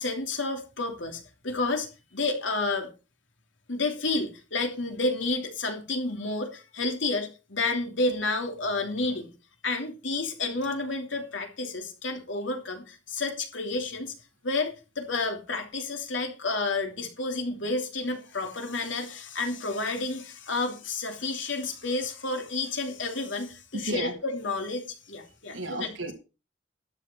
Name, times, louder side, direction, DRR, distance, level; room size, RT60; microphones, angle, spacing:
voice 1, 0.0-2.9 3.7-9.3 9.6-14.1 14.4-25.5 25.8-25.9, left 3 dB, 70° left, 3.1 m, -30 dB
voice 2, 23.7-24.2 25.5-26.1, right 1 dB, 75° right, 2.6 m, -33 dB
12.5 x 9.5 x 4.5 m
head